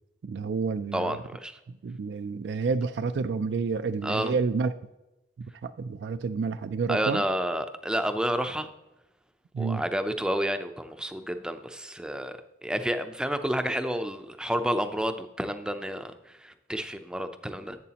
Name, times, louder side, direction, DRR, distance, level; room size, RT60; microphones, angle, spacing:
voice 1, 0.2-1.2 1.7-4.7 5.4-7.3 9.5-9.8, right 4 dB, 65° right, 10 dB, 0.4 m, -29 dB
voice 2, 0.9-1.6 4.0-4.3 6.9-8.7 9.6-17.8, equal, 5° right, 8 dB, 0.5 m, -30 dB
11.0 x 8.2 x 2.9 m, 0.98 s
head